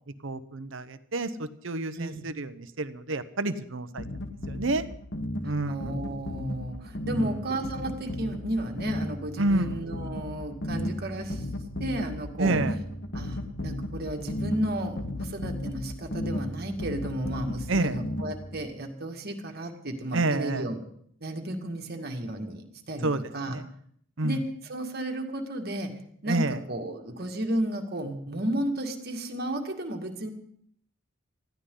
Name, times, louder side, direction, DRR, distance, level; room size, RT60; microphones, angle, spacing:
voice 1, 0.2-4.0 4.5-4.8 5.4-5.9 7.1-7.5 9.4-9.9 12.4-12.8 17.7-18.0 20.1-20.7 23.0-23.2 23.5-23.7 24.2-24.4 26.3-26.6, right 2 dB, 65° right, 12 dB, 0.9 m, -29 dB
voice 2, 1.9-2.3 5.4-11.4 11.8-12.6 13.1-20.8 21.2-23.6 24.2-25.9 26.2-30.3, right 1 dB, 50° right, 3 dB, 2.1 m, -33 dB
sound 1, 4.0-18.6, left 1 dB, 60° left, 1.4 m, -35 dB
20.0 x 14.5 x 3.9 m, 0.65 s
head